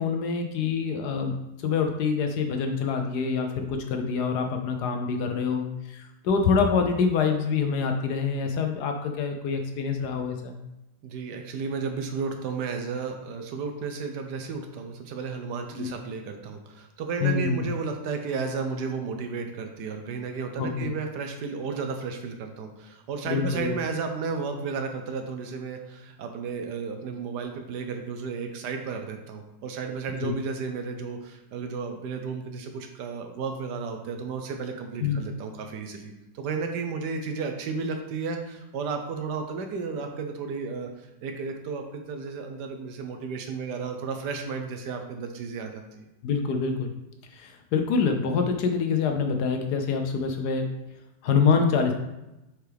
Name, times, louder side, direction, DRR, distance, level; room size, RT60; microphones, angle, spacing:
voice 1, 0.0-1.3 1.6-10.6 15.7-15.9 17.2-17.6 20.6-20.9 23.3-23.7 30.2-30.4 35.0-35.2 46.2-46.9 47.3-50.7 51.2-51.9, left 5 dB, 70° left, 5 dB, 1.1 m, -26 dB
voice 2, 11.0-46.0, right 5 dB, 70° right, 5 dB, 1.2 m, -33 dB
6.9 x 4.5 x 3.4 m, 0.94 s
omnidirectional pair, 2.0 m